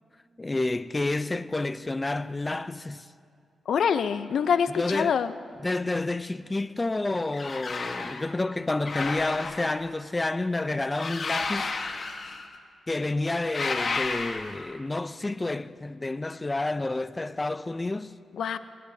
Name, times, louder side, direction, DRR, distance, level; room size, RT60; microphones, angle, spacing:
voice 1, 0.4-3.1 4.7-5.2 5.6-11.7 12.9-18.1, left 2 dB, 25° left, 0.4 m, -29 dB
voice 2, 3.7-5.3 18.3-18.6, left 7 dB, 75° left, 0.5 m, -25 dB
sound 1, 7.3-8.3 8.9-9.9 11.0-12.6 13.4-14.7, left 4 dB, 50° left, 1.2 m, -32 dB
22.0 x 17.5 x 2.7 m
cardioid pair, 75°, 0 cm